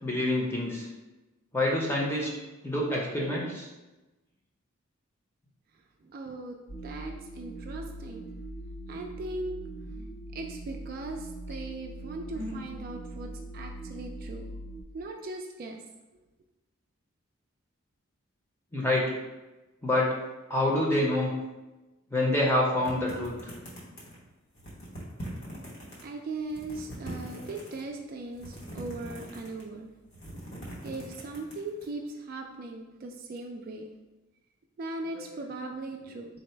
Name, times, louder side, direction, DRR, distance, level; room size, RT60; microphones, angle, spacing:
voice 1, 0.0-0.9 1.5-2.3 2.6-3.7 10.0-10.1 12.3-12.6 18.7-19.1 19.8-20.1 20.5-21.3 22.1-23.5 35.2-35.3, left 1 dB, 10° left, -3 dB, 0.7 m, -27 dB
voice 2, 6.0-6.6 6.8-8.2 8.9-9.6 10.3-14.5 14.9-15.8 26.0-29.9 30.6-33.9 34.8-36.3, right 2 dB, 45° right, 2 dB, 0.3 m, -39 dB
sound 1, 6.7-14.8, right 1 dB, 85° left, 0.6 m, -41 dB
sound 2, 22.8-24.2 24.6-26.0 26.4-27.8 28.3-29.7 30.0-31.9, equal, 55° left, 1.1 m, -42 dB
3.9 x 2.1 x 4.3 m, 1.1 s
head